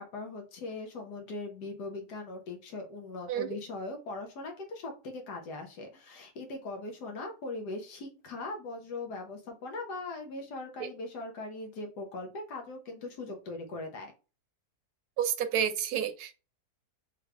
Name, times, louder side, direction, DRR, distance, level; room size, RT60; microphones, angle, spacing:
voice 1, 0.0-14.1, left 2 dB, 80° left, 1.6 m, -40 dB
voice 2, 15.2-16.3, right 9 dB, 75° right, 1.1 m, -30 dB
3.7 x 3.3 x 3.2 m
omnidirectional pair, 1.7 m